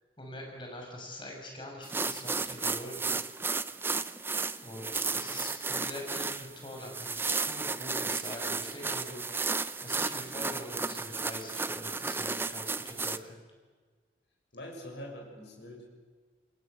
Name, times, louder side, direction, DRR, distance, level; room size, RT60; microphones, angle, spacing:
voice 1, 0.2-3.1 4.6-9.5 9.8-13.4, left 1 dB, 30° left, 0 dB, 6.3 m, -44 dB
sound 1, 1.8-13.2, right 4 dB, 15° right, 0.6 m, -33 dB
voice 2, 14.5-15.8, equal, 80° left, -1 dB, 6.7 m, -44 dB
27.5 x 21.5 x 6.8 m, 1.4 s
head